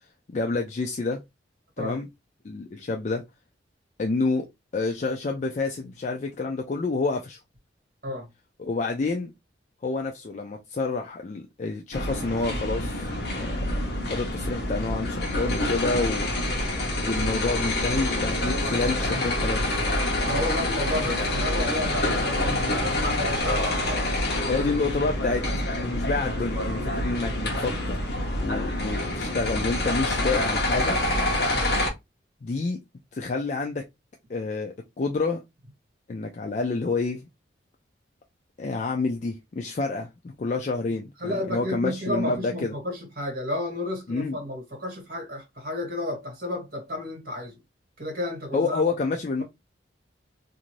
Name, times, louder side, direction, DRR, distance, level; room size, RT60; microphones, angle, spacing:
voice 1, 0.3-1.2 1.8-2.1 2.4-3.2 4.0-4.5 4.7-7.4 8.6-9.3 9.8-13.7 14.0-16.3 17.0-19.6 24.5-25.4 25.7-28.0 28.4-31.0 32.4-32.8 33.1-33.8 34.3-35.4 36.1-37.3 38.6-40.1 40.4-42.7 44.1-44.4 48.5-49.4, left 3 dB, 40° left, 0.4 m, -28 dB
sound 1, 11.9-31.9, left 1 dB, 60° left, 0.8 m, -27 dB
voice 2, 20.3-24.0 24.6-24.7 31.4-31.8 41.2-47.6 48.0-48.8, left 1 dB, 50° right, 1.5 m, -32 dB
2.5 x 2.5 x 3.0 m
head